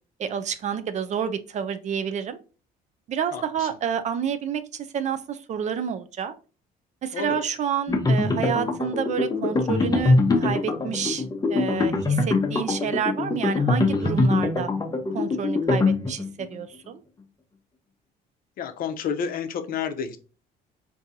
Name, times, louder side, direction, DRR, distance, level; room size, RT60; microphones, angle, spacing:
voice 1, 0.2-2.4 3.1-6.3 7.0-11.2 11.5-14.7 15.1-17.0, right 8 dB, 45° right, 10 dB, 0.4 m, -29 dB
voice 2, 3.3-3.7 7.1-7.5 18.6-20.2, left 7 dB, 60° left, 8 dB, 0.6 m, -30 dB
sound 1, 7.9-16.4, left 3 dB, 20° left, 0.7 m, -23 dB
3.7 x 2.7 x 2.6 m, 0.35 s
cardioid pair, 110°, 17 cm